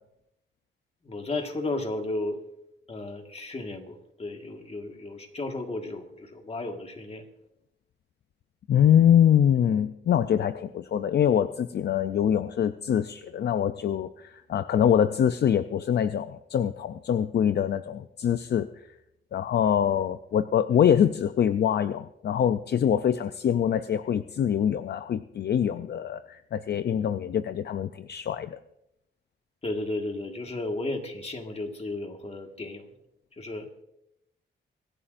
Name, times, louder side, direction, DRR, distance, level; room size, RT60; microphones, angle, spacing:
voice 1, 1.0-2.4 2.9-7.2 29.6-32.9 33.4-33.8, left 2 dB, 30° left, 4 dB, 1.7 m, -34 dB
voice 2, 8.7-18.7 19.3-28.6, left 9 dB, 55° left, 11 dB, 0.5 m, -24 dB
25.0 x 11.5 x 2.6 m, 0.81 s
wide cardioid pair, 115°, 20 cm